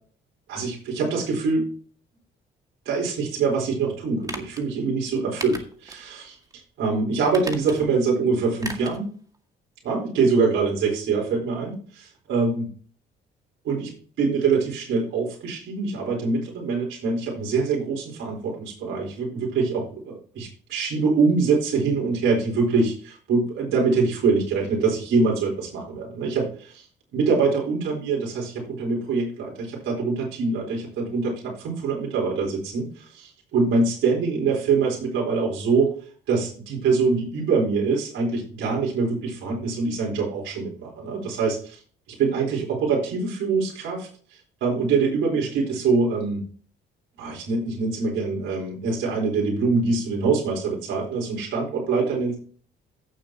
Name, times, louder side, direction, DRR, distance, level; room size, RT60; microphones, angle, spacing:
voice 1, 0.5-1.7 2.8-9.1 9.8-12.7 13.6-13.9 14.2-26.9 27.1-36.0 36.3-41.8 42.2-46.4 47.2-52.4, right 4 dB, 80° right, -1 dB, 4.3 m, -24 dB
sound 1, 4.2-4.6 5.4-6.1 6.4-6.5 7.3-8.0 8.6-9.0 9.3-9.4, right 2 dB, 20° right, 2.0 m, -36 dB
15.5 x 7.1 x 3.0 m, 0.43 s
cardioid pair, 90°, 20 cm